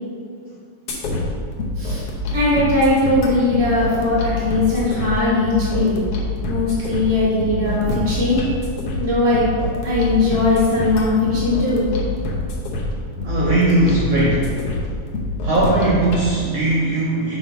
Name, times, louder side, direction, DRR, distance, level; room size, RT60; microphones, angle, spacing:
sound 1, 0.9-16.3, left 2 dB, 90° left, 1.3 m, -26 dB
voice 1, 2.3-6.0 6.5-8.4 9.0-9.4 9.8-11.9, left 2 dB, 50° left, -9 dB, 0.7 m, -19 dB
voice 2, 13.2-14.6 15.4-17.4, right 2 dB, 75° right, -6 dB, 1.4 m, -19 dB
6.3 x 4.0 x 5.4 m, 2.2 s
omnidirectional pair, 3.9 m